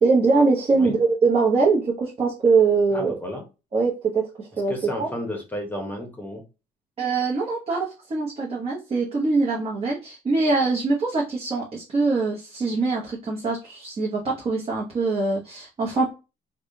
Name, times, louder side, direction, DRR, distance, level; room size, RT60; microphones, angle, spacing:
voice 1, 0.0-3.2 3.7-5.1 7.0-16.1, right 4 dB, 35° right, -3 dB, 1.0 m, -23 dB
voice 2, 2.9-3.4 4.7-6.4, left 1 dB, 10° left, 2 dB, 1.0 m, -32 dB
3.4 x 2.3 x 3.8 m, 0.29 s
cardioid pair, 110°, 17 cm